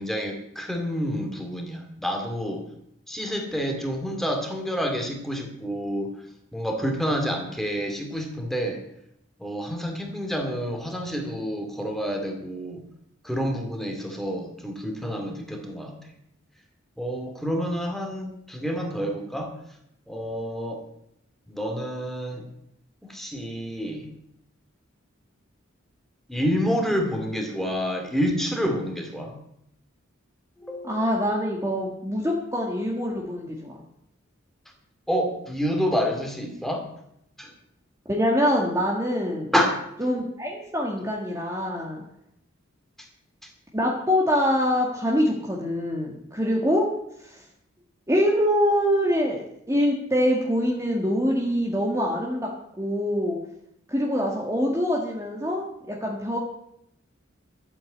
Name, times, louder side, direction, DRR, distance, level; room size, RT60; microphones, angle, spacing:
voice 1, 0.0-2.7 3.1-6.1 6.5-8.8 9.4-12.8 13.2-16.0 17.0-19.6 20.1-20.9 21.5-22.5 23.1-24.1 26.3-29.4 30.6-31.0 35.1-36.9 37.4-37.5 39.5-39.8, equal, ahead, 3 dB, 2.4 m, -28 dB
voice 2, 30.8-33.7 38.0-39.5 40.0-42.0 43.7-46.9 47.2-47.4 48.1-52.5 52.8-53.4 53.9-56.4, equal, 15° right, -2 dB, 1.7 m, -24 dB
13.0 x 8.6 x 8.0 m, 0.77 s
head